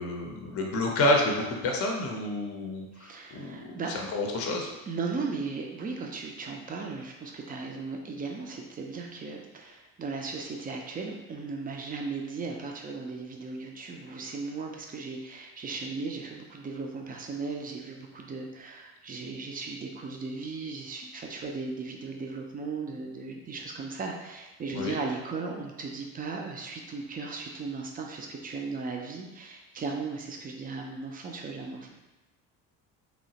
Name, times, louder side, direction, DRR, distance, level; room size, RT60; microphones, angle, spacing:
voice 1, 0.0-4.7 24.7-25.0, left 1 dB, 30° left, 1 dB, 0.6 m, -29 dB
voice 2, 2.9-3.9 4.9-31.9, right 4 dB, 20° right, 1 dB, 0.4 m, -37 dB
2.9 x 2.0 x 2.8 m, 1.1 s
hypercardioid pair, 60°, 45 cm